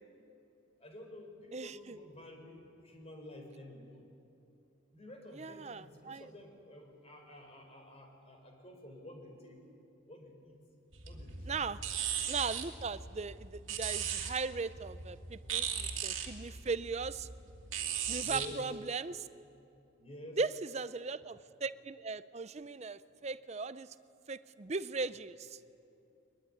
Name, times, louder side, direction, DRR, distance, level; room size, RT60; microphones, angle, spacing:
voice 1, 0.8-4.1 4.9-9.6 10.1-10.6 11.0-11.7 15.4-15.6 18.1-18.6 20.0-20.4, left 1 dB, 30° left, 2 dB, 4.3 m, -50 dB
voice 2, 1.5-2.0 5.4-6.3 11.5-11.8 12.3-17.3 18.1-19.3 20.4-23.9 24.3-25.6, right 4 dB, 30° right, 14 dB, 0.5 m, -38 dB
sound 1, 10.9-18.5, right 8 dB, 70° right, 2.6 m, -38 dB
23.0 x 21.0 x 9.9 m, 2.8 s
head